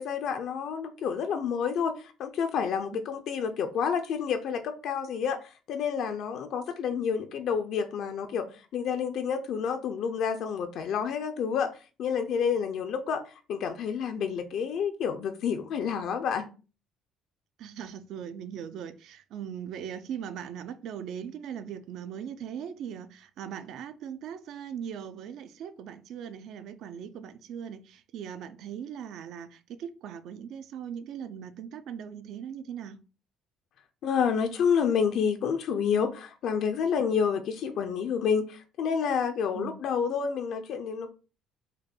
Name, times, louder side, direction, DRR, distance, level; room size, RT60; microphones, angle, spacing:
voice 1, 0.0-8.5 8.7-11.7 12.0-13.2 13.5-16.5 34.0-41.1, left 7 dB, 55° left, 0.5 m, -29 dB
voice 2, 17.6-33.0 39.5-39.8, right 8 dB, 60° right, 0.5 m, -39 dB
5.0 x 2.3 x 4.3 m
cardioid pair, 155°, 0 cm